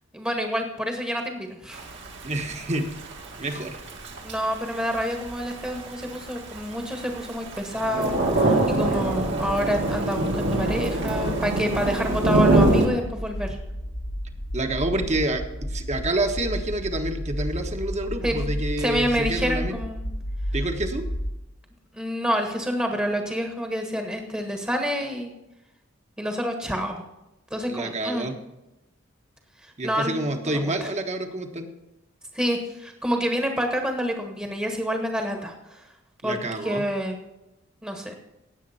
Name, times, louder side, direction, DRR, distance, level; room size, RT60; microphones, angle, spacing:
voice 1, 0.1-1.9 3.5-3.6 4.2-13.6 18.2-18.5 18.8-20.1 21.9-25.3 26.2-27.0 27.5-28.3 29.6-30.9 32.3-35.9 36.2-37.2 37.8-38.1, equal, 10° right, 3 dB, 1.4 m, -28 dB
Thunder / Rain, 1.7-12.9, right 2 dB, 60° right, 2.3 m, -25 dB
voice 2, 2.2-2.9 3.4-3.8 14.5-19.8 20.5-21.1 27.7-28.3 29.8-31.7 36.2-36.8, right 1 dB, 35° right, 5 dB, 1.4 m, -28 dB
sound 1, 7.8-21.3, equal, 85° left, 2.1 m, -33 dB
18.0 x 7.6 x 4.3 m, 1.0 s
head